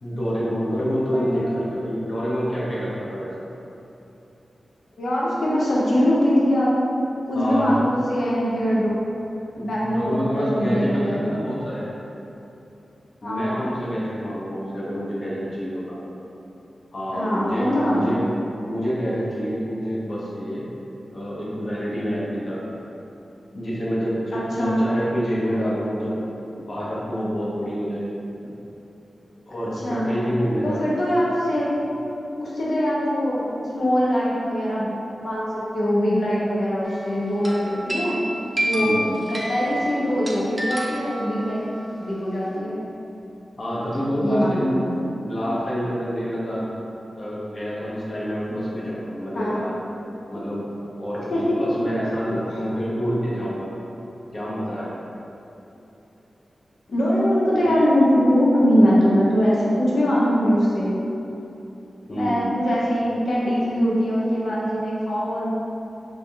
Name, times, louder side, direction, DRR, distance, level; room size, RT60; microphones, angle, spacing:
voice 1, 0.0-3.3 7.3-7.7 9.6-11.9 13.2-16.0 16.9-18.2 18.6-20.6 21.1-22.6 23.5-26.2 26.5-28.1 29.5-30.8 38.8-39.1 43.6-46.7 47.2-49.8 50.3-50.6 51.0-51.3 51.6-53.7 54.3-55.0 62.1-62.5, equal, 50° left, -8 dB, 0.8 m, -27 dB
voice 2, 1.1-1.5 5.0-6.8 7.3-8.9 9.6-11.3 13.2-13.8 17.1-18.3 24.3-24.8 29.5-30.2 30.6-31.7 32.4-33.5 33.7-41.7 42.0-42.7 44.2-44.8 49.3-49.6 51.3-51.6 52.5-52.6 56.9-61.0 62.1-65.5, equal, 80° left, -7 dB, 0.8 m, -22 dB
sound 1, 36.8-37.1 37.4-41.8, equal, 20° right, 0.5 m, -29 dB
3.3 x 2.7 x 3.5 m, 2.9 s
wide cardioid pair, 120°, 0 cm